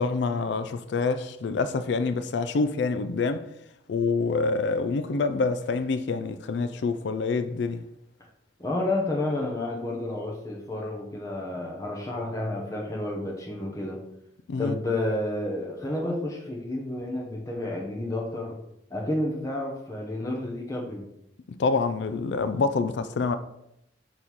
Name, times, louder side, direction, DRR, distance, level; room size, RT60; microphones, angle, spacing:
voice 1, 0.0-3.5 3.9-7.8 14.5-14.8 21.5-23.4, left 4 dB, 70° left, 0.4 m, -26 dB
voice 2, 8.6-14.0 14.6-18.6 18.9-21.0, left 1 dB, 20° left, 0.8 m, -30 dB
6.3 x 3.0 x 5.4 m
head